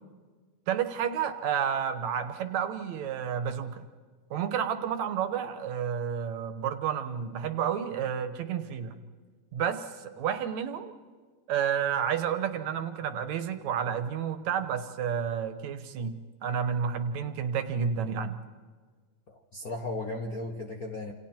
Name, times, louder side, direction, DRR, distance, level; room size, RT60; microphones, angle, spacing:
voice 1, 0.7-3.9 4.3-9.0 9.5-10.9 11.5-16.1 16.4-18.4, right 8 dB, 75° right, 9 dB, 2.5 m, -30 dB
voice 2, 19.3-21.1, left 2 dB, 45° left, 2 dB, 1.2 m, -36 dB
28.5 x 28.0 x 4.5 m, 1.5 s
omnidirectional pair, 3.4 m